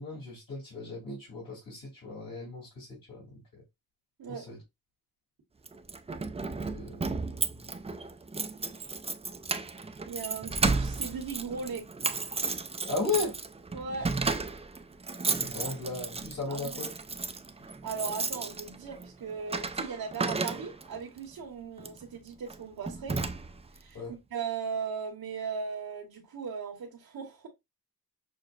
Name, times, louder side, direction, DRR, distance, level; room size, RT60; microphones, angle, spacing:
voice 1, 0.0-3.3 3.5-3.6 4.3-4.6 6.5-7.7 12.9-13.4 15.4-16.9 23.9-24.2, left 3 dB, 65° left, 2.6 m, -36 dB
Keys jangling, 5.7-21.0 21.8-22.0 22.5-22.6 22.9-23.8, right 4 dB, 15° right, 0.4 m, -34 dB
voice 2, 10.1-11.9 13.7-14.1 16.5-16.7 17.8-23.2 23.8-24.0 24.3-27.5, right 5 dB, 70° right, 1.2 m, -37 dB
6.3 x 2.2 x 2.4 m
cardioid pair, 65°, 36 cm